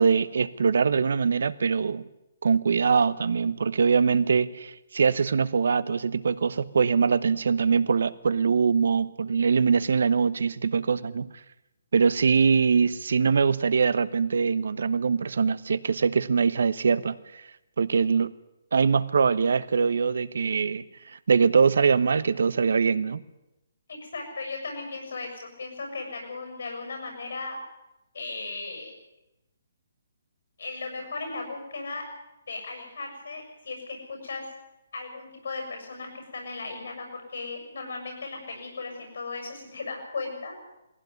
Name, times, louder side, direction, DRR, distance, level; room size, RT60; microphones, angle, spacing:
voice 1, 0.0-2.1 2.4-11.3 11.9-17.4 17.8-18.3 18.7-20.8 21.1-23.2, right 5 dB, 75° right, 17 dB, 1.1 m, -23 dB
voice 2, 23.9-27.6 28.1-28.9 30.6-32.0 32.5-34.4 34.9-40.6, left 3 dB, 75° left, 3 dB, 7.0 m, -36 dB
19.0 x 16.0 x 9.5 m, 0.94 s
hypercardioid pair, 155°, 0 cm